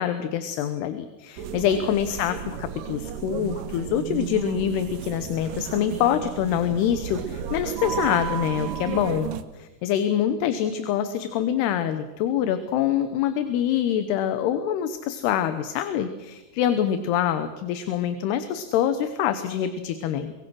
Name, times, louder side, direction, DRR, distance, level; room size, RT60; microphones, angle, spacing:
voice 1, 0.0-20.3, left 9 dB, 75° left, 10 dB, 3.0 m, -25 dB
sound 1, 1.4-9.4, right 9 dB, 70° right, 2.3 m, -33 dB
24.5 x 22.0 x 6.3 m, 1.1 s
omnidirectional pair, 4.9 m